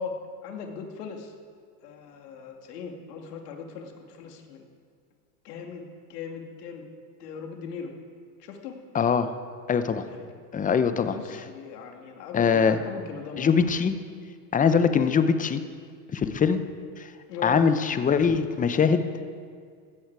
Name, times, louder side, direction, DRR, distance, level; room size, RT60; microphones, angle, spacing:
voice 1, 0.0-1.3 1.8-4.6 5.4-6.8 7.2-7.9 8.4-8.8 10.1-10.2 11.1-13.7 17.3-17.6, left 5 dB, 70° left, 3 dB, 2.6 m, -39 dB
voice 2, 8.9-9.3 9.7-10.1 10.5-11.2 12.3-12.8 13.4-13.9 14.5-15.6 16.1-16.6 17.0-17.1 17.4-19.0, left 6 dB, 15° left, 10 dB, 0.8 m, -22 dB
16.5 x 13.5 x 4.8 m, 2.1 s
hypercardioid pair, 110°, 49 cm